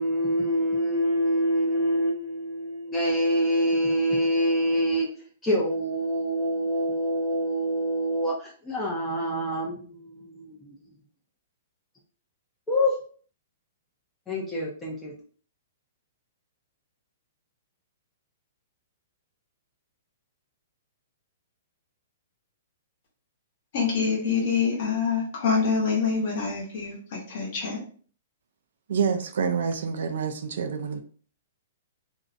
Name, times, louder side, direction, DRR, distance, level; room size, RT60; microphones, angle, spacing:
voice 1, 0.0-5.1 5.4-10.7 12.7-12.9 14.3-15.1, equal, 10° left, 0.4 m, -26 dB
voice 2, 23.7-27.8, left 5 dB, 45° left, 0.8 m, -26 dB
voice 3, 28.9-31.0, right 6 dB, 70° right, 0.3 m, -27 dB
2.4 x 2.0 x 2.5 m
hypercardioid pair, 165°, 0 cm